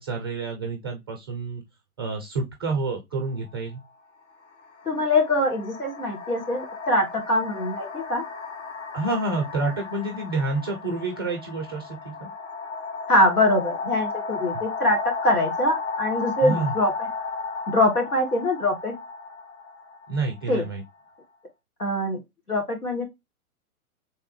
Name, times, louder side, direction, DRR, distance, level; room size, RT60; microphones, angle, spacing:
voice 1, 0.0-1.6 2.0-3.8 8.9-12.3 16.4-16.8 20.1-20.8, right 3 dB, 20° right, 0.3 m, -28 dB
sound 1, 3.3-3.5 4.4-21.1, left 4 dB, 55° left, 0.9 m, -34 dB
voice 2, 4.8-8.2 13.1-15.0 15.2-17.1 17.7-18.9 20.5-20.6 21.8-22.2 22.5-23.1, left 1 dB, 90° left, 1.8 m, -23 dB
3.4 x 3.4 x 2.9 m
figure-of-eight pair, 115°, 44 cm